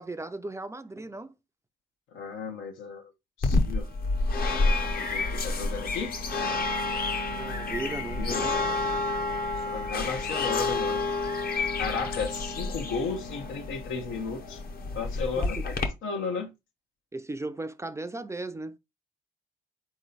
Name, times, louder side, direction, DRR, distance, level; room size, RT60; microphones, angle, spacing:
voice 1, 0.0-1.3 7.3-8.6 15.3-15.6 17.1-18.8, right 2 dB, 15° right, 0.4 m, -36 dB
voice 2, 2.1-3.1 3.4-3.9 5.0-6.1 8.2-8.4 9.7-11.1 11.8-14.6 14.9-16.5, left 5 dB, 85° left, 1.0 m, -34 dB
sound 1, 3.4-15.9, left 3 dB, 50° left, 0.9 m, -29 dB
4.2 x 3.1 x 4.0 m
cardioid pair, 90°, 20 cm